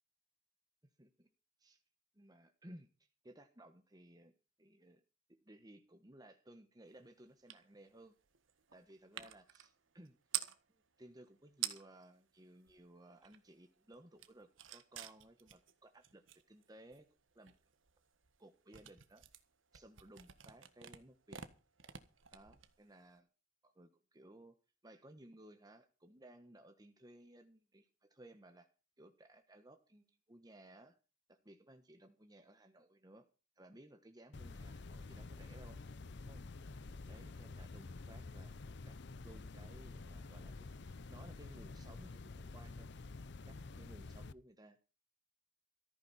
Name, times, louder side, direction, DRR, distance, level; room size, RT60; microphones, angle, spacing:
voice 1, 1.0-1.3 1.6-1.8 2.1-5.0 5.3-8.1 8.7-10.2 11.0-17.1 17.3-17.5 18.4-19.3 19.7-21.5 22.3-23.3 23.6-24.6 24.8-28.7 29.0-31.0 31.3-33.3 33.6-35.8 36.2-36.7 37.1-38.6 38.8-39.0 39.2-42.9 43.4-44.8, right 1 dB, 20° right, 6 dB, 1.3 m, -59 dB
sound 1, 7.5-7.6 7.9-10.6 11.3-11.4 11.5-12.1 12.5-13.6 13.9-23.1, right 11 dB, 90° right, 1.6 m, -47 dB
sound 2, 34.3-44.3, left 3 dB, 60° left, 0.7 m, -49 dB
15.0 x 14.5 x 4.3 m, 0.34 s
head